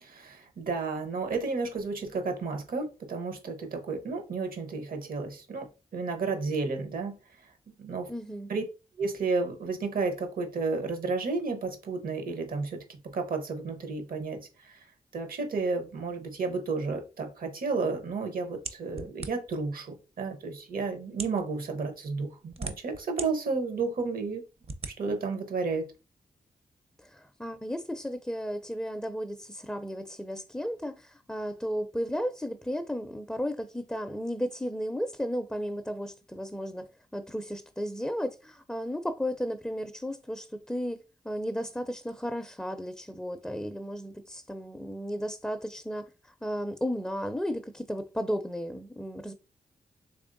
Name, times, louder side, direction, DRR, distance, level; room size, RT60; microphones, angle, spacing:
voice 1, 0.1-7.2 7.8-8.1 8.5-8.6 9.0-14.8 15.1-24.4 25.0-25.9, right 4 dB, 70° right, 0.9 m, -32 dB
voice 2, 8.1-8.5 27.0-49.3, equal, 5° left, 0.4 m, -34 dB
sound 1, 18.6-19.6 20.4-20.5 21.1-21.4 22.2-23.3 23.8-23.9 24.6-24.9, right 3 dB, 40° right, 0.6 m, -38 dB
3.5 x 3.3 x 2.5 m
supercardioid pair, 45°, 15 cm